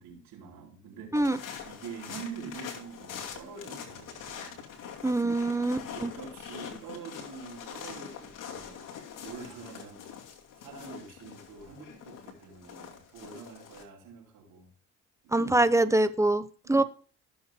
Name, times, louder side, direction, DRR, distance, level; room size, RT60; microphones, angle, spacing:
voice 1, 0.0-1.4 1.6-4.6 5.1-5.5 5.9-8.8 9.2-10.2 10.6-14.7 15.2-15.6 16.6-16.8, right 5 dB, 85° right, 4.4 m, -46 dB
sound 1, 1.1-13.8, left 7 dB, 75° left, 2.5 m, -44 dB
voice 2, 5.0-6.1 15.3-16.8, right 2 dB, 10° right, 1.0 m, -24 dB
16.0 x 7.2 x 2.3 m
supercardioid pair, 65°, 32 cm